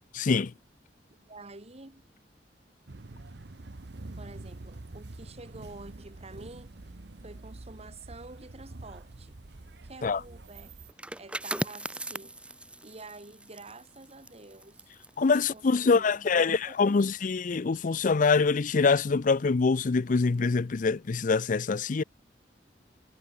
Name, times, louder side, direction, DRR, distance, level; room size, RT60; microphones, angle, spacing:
voice 1, 0.1-0.5 10.0-10.2 15.2-22.0, left 4 dB, 45° left, 0.5 m, -24 dB
voice 2, 1.1-2.0 4.2-6.7 7.2-9.3 9.8-10.7 11.2-12.3 12.8-14.8 15.3-17.2, right 2 dB, 35° right, 2.2 m, -48 dB
sound 1, 2.9-10.9, right 2 dB, 70° right, 1.0 m, -46 dB
sound 2, 10.9-16.4 16.7-17.0, right 1 dB, 5° right, 1.8 m, -39 dB
head